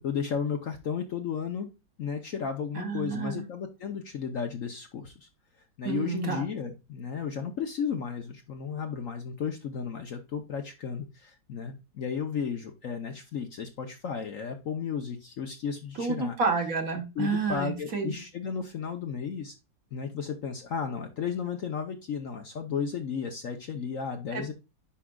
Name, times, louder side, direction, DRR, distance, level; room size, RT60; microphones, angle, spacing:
voice 1, 0.0-1.7 2.0-5.3 5.8-16.4 17.2-19.5 19.9-24.5, left 6 dB, 55° left, 1.0 m, -34 dB
voice 2, 2.7-3.4 5.8-6.4 16.0-18.2 24.3-24.5, right 4 dB, 50° right, 1.7 m, -30 dB
10.0 x 4.9 x 2.3 m
omnidirectional pair, 2.0 m